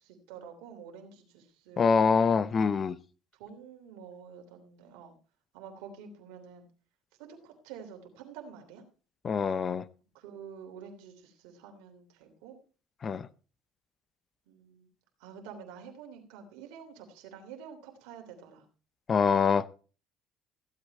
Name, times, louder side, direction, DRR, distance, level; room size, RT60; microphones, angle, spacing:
voice 1, 0.0-1.9 3.3-5.1 5.5-6.7 7.2-8.8 10.1-12.6 14.5-14.9 15.2-18.6, right 7 dB, 80° right, 4 dB, 3.1 m, -48 dB
voice 2, 1.8-3.0 9.2-9.8 13.0-13.3 19.1-19.7, left 5 dB, 40° left, 17 dB, 0.7 m, -25 dB
15.0 x 8.1 x 4.2 m, 0.36 s
supercardioid pair, 80°, 0 cm